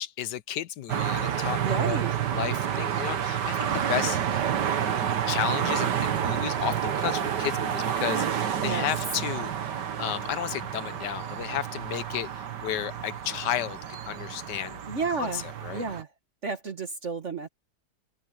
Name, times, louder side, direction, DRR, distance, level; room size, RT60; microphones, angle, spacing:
voice 1, 0.0-2.0 2.3-4.4 5.3-9.5 10.0-14.8 15.2-15.8, left 11 dB, 90° left, 1.5 m, -33 dB
sound 1, 0.9-16.0, right 9 dB, 80° right, 1.9 m, -29 dB
voice 2, 1.6-2.2 8.6-8.9 14.9-15.5 15.7-16.1 16.4-17.5, right 4 dB, 45° right, 1.8 m, -31 dB
open air
omnidirectional pair, 1.8 m